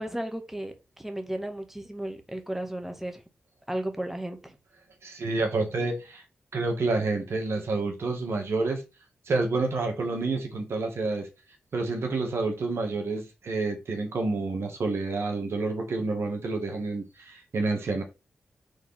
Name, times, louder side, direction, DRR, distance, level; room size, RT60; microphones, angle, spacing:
voice 1, 0.0-3.2 3.7-4.6, right 1 dB, 5° right, 1.7 m, -34 dB
voice 2, 5.0-6.2 6.5-8.8 9.3-11.3 11.7-18.0, right 3 dB, 70° right, 2.0 m, -29 dB
5.1 x 3.9 x 5.9 m
supercardioid pair, 45°, 5 cm